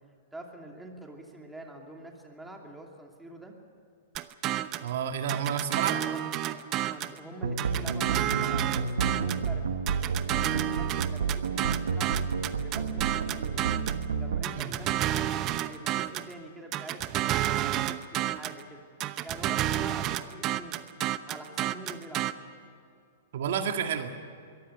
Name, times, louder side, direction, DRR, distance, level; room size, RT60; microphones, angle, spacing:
voice 1, 0.3-3.5 5.9-6.2 6.9-9.6 10.3-13.6 14.2-18.8 19.2-20.8 21.3-22.2 22.6-22.7, right 1 dB, 5° right, 1 dB, 2.7 m, -46 dB
sound 1, 4.1-4.9 5.3-7.2 7.6-9.5 9.9-14.0 14.4-16.3 16.7-18.6 19.0-22.3, right 14 dB, 35° right, 0.9 m, -30 dB
voice 2, 4.8-6.0 14.5-14.7 23.3-24.1, right 8 dB, 65° right, 6 dB, 1.8 m, -30 dB
sound 2, 7.4-14.4, right 5 dB, 85° right, 1.4 m, -30 dB
23.0 x 14.5 x 9.8 m, 2.3 s
hypercardioid pair, 125°, 0 cm